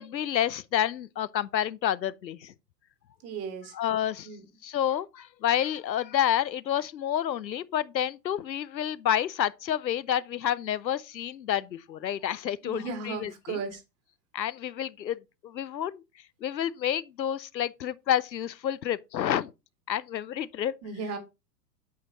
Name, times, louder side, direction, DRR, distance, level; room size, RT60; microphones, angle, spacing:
voice 1, 0.0-2.5 3.7-4.3 4.6-13.6 14.3-15.2 15.4-16.0 16.4-19.5 19.9-20.7, left 10 dB, 85° left, 0.6 m, -29 dB
voice 2, 3.2-3.7 4.2-4.4 12.6-13.8 20.8-21.2, right 5 dB, 30° right, 1.7 m, -35 dB
8.3 x 4.5 x 3.8 m
figure-of-eight pair, 95°, 50 cm